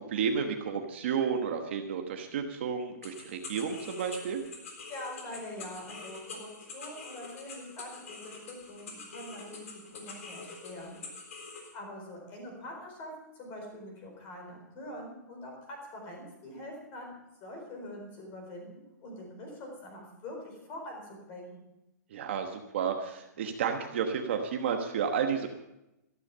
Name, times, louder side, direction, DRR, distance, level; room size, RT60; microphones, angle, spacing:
voice 1, 0.0-4.4 22.1-25.5, right 6 dB, 40° right, 4 dB, 1.2 m, -31 dB
sound 1, 3.0-11.7, left 4 dB, 50° left, 3.7 m, -45 dB
voice 2, 4.9-9.7 9.9-11.0 11.7-17.1 17.4-21.6, left 1 dB, 20° left, 1 dB, 4.3 m, -44 dB
13.5 x 13.5 x 5.5 m, 0.91 s
hypercardioid pair, 180°, 10 cm